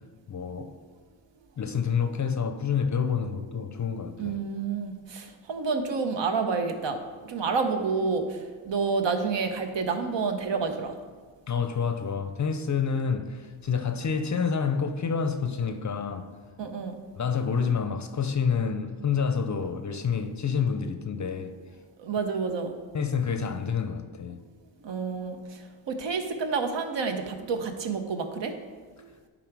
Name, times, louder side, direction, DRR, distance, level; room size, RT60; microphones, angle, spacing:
voice 1, 0.3-0.7 1.6-4.4 11.5-16.3 17.2-21.6 22.9-24.4, left 6 dB, 35° left, 0.6 m, -28 dB
voice 2, 4.2-7.0 7.3-8.2 8.7-10.9 16.6-17.0 22.0-22.7 24.8-25.4 25.9-28.5, right 4 dB, 60° right, 0.9 m, -29 dB
10.0 x 3.9 x 4.6 m
cardioid pair, 75°, 49 cm